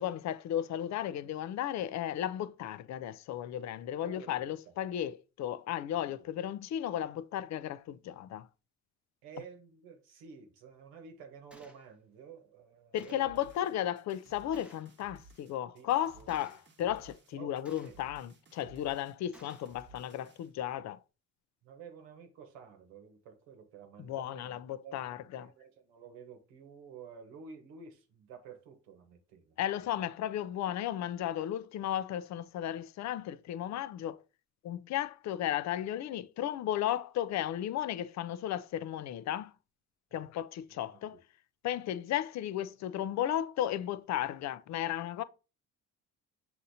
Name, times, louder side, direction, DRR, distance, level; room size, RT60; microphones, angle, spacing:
voice 1, 0.0-8.5 12.9-21.0 24.0-25.5 29.6-34.2 34.6-39.5 40.1-41.2 41.6-45.2, left 11 dB, 55° left, 0.4 m, -34 dB
voice 2, 4.0-4.7 5.9-6.3 9.2-13.6 15.7-16.6 17.3-17.5 17.9-18.0 21.6-30.0 40.1-40.3 40.7-41.2, right 6 dB, 85° right, 1.1 m, -52 dB
Gunshot gunfire, 11.5-11.8 13.0-13.4 14.5-14.9 16.3-16.7 17.6-18.1 19.3-19.7, right 1 dB, 5° right, 0.7 m, -58 dB
sound 1, 13.2-20.5, right 3 dB, 35° right, 0.9 m, -58 dB
6.3 x 2.8 x 2.7 m
supercardioid pair, 70°, 34 cm